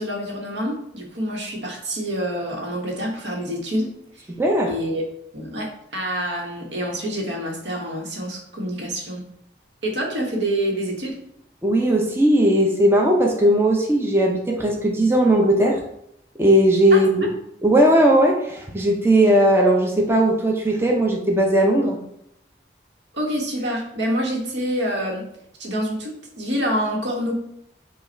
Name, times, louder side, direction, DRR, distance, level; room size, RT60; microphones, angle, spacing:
voice 1, 0.0-4.3 4.7-5.0 5.3-9.2 9.8-11.2 16.9-17.0 23.1-25.2 25.6-27.3, equal, 85° right, 0 dB, 1.2 m, -27 dB
voice 2, 4.4-4.7 11.6-15.8 16.4-17.3 17.6-22.0, right 1 dB, 15° right, 0 dB, 0.5 m, -18 dB
5.0 x 2.4 x 4.4 m, 0.76 s
head